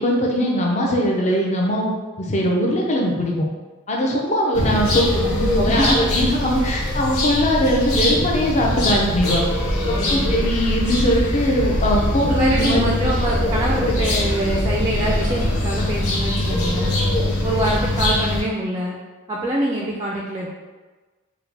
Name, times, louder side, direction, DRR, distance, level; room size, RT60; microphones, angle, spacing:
voice 1, 0.0-3.5 3.9-5.1 5.4-9.4 9.9-12.9, equal, 30° left, -1 dB, 0.5 m, -21 dB
sound 1, 4.5-18.4, left 1 dB, 85° left, 0.8 m, -22 dB
voice 2, 5.2-6.1 9.9-10.4 12.3-17.0 17.4-18.9 19.3-20.5, right 1 dB, 20° right, -2 dB, 0.3 m, -25 dB
4.8 x 2.2 x 3.2 m, 1.3 s
head